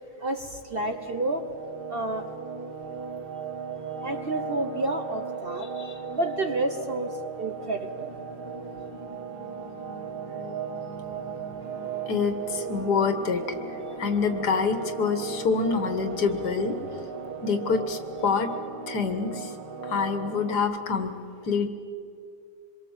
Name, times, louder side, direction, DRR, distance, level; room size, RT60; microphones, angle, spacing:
voice 1, 0.2-1.4 1.9-2.2 4.0-5.7 6.1-8.1, right 1 dB, 40° right, 6 dB, 1.1 m, -30 dB
sound 1, 0.7-20.6, right 6 dB, 75° right, 2.1 m, -37 dB
voice 2, 5.6-6.0 12.1-16.8 17.4-18.5 18.9-19.5 19.8-21.1 21.5-21.7, left 5 dB, 70° left, 8 dB, 2.1 m, -26 dB
sound 2, 6.8-17.8, left 4 dB, 20° right, 2.6 m, -48 dB
25.5 x 22.5 x 7.4 m, 2.4 s
omnidirectional pair, 1.8 m